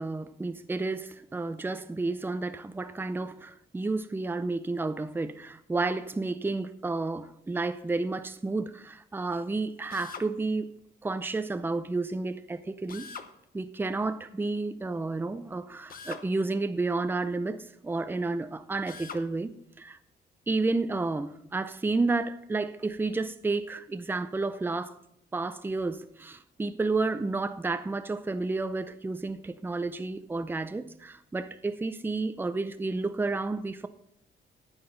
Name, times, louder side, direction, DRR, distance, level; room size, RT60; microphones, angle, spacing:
voice 1, 0.0-10.7 11.0-13.1 13.5-19.5 19.8-20.0 20.5-25.0 25.3-33.9, right 3 dB, 10° right, 0.5 m, -31 dB
Drill, 9.9-10.3 12.9-13.3 15.9-16.3 18.9-19.3, left 6 dB, 45° left, 0.9 m, -42 dB
11.0 x 8.7 x 3.9 m
cardioid pair, 125°, 19 cm